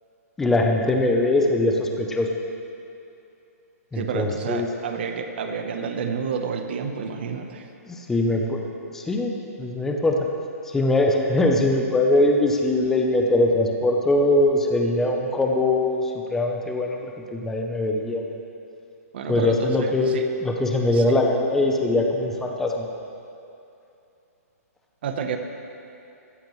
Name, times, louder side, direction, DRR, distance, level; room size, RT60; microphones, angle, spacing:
voice 1, 0.4-2.3 3.9-4.7 7.9-8.7 8.9-9.3 9.6-10.2 10.7-17.0 17.3-18.3 19.3-20.1 20.4-22.9, left 2 dB, 5° left, 1 dB, 0.6 m, -22 dB
voice 2, 3.9-7.7 19.1-20.3 20.9-21.0 25.0-25.4, right 6 dB, 40° right, 6 dB, 0.9 m, -29 dB
16.5 x 14.5 x 3.2 m, 2.7 s
hypercardioid pair, 175°, 9 cm